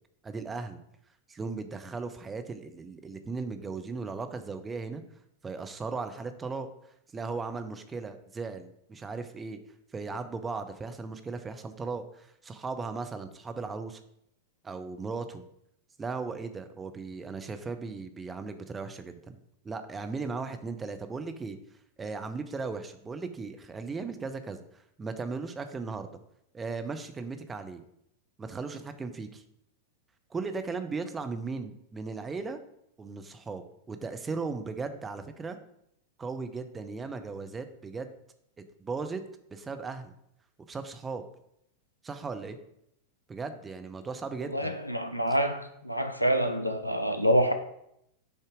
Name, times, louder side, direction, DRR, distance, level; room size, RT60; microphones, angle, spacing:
voice 1, 0.2-0.8 1.3-5.0 5.4-6.7 7.1-9.6 9.9-14.0 14.6-15.4 16.0-19.4 19.6-21.6 22.0-26.1 26.5-27.8 28.4-29.4 30.3-32.6 33.0-35.6 36.2-38.1 38.8-39.2 39.5-40.1 40.7-41.2 42.0-42.6 43.3-44.8, right 4 dB, 15° right, 8 dB, 0.6 m, -37 dB
voice 2, 44.5-47.5, equal, 90° left, 7 dB, 0.4 m, -26 dB
6.7 x 2.8 x 4.9 m, 0.77 s
figure-of-eight pair, 90°, 0 cm